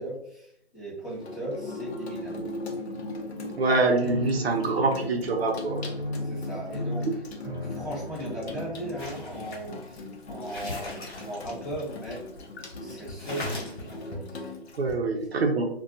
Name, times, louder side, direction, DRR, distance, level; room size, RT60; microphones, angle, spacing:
voice 1, 0.0-2.5 6.2-7.2 7.6-12.2 12.8-14.5, right 1 dB, 15° left, -11 dB, 0.8 m, -37 dB
Water tap faucet / Sink (filling or washing), 1.1-14.9, left 2 dB, 70° left, 0.6 m, -39 dB
voice 2, 3.6-5.9 14.8-15.7, right 3 dB, 65° right, 3 dB, 0.6 m, -25 dB
Piano, 4.0-9.9, left 1 dB, 25° right, 0.9 m, -36 dB
sound 1, 9.0-12.5 12.8-12.9 13.2-14.1, left 2 dB, 45° left, 1.2 m, -40 dB
2.3 x 2.2 x 2.7 m, 0.69 s
hypercardioid pair, 165°, 33 cm